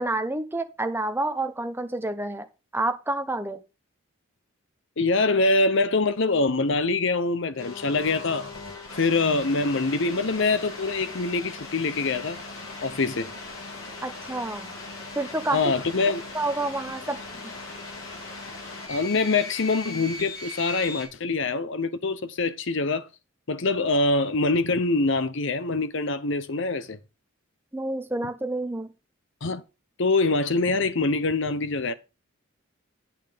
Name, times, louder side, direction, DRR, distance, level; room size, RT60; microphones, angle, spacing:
voice 1, 0.0-2.5 2.7-3.6 14.0-14.7 15.2-15.6 16.3-17.2 27.7-28.9, right 2 dB, 10° right, 0.7 m, -28 dB
voice 2, 5.0-8.5 9.0-12.4 12.8-13.3 15.5-16.2 18.9-23.1 23.5-27.0 29.4-29.6 30.0-31.9, left 3 dB, 60° left, 0.8 m, -24 dB
sound 1, 7.6-21.1, left 3 dB, 85° left, 3.2 m, -39 dB
8.9 x 5.9 x 5.0 m
head